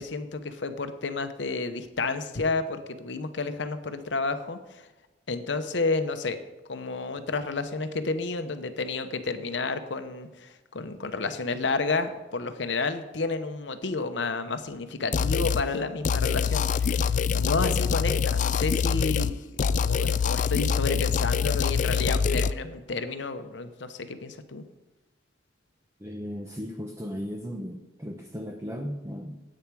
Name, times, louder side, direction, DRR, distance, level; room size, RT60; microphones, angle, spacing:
voice 1, 0.0-4.9 5.3-6.4 6.7-24.6, left 3 dB, 70° left, 9 dB, 0.9 m, -31 dB
sound 1, 15.1-15.6 16.0-19.3 19.6-22.5, left 6 dB, 40° left, 0.3 m, -25 dB
voice 2, 26.0-29.4, equal, 15° right, 2 dB, 0.7 m, -36 dB
10.5 x 8.8 x 4.7 m, 1.1 s
head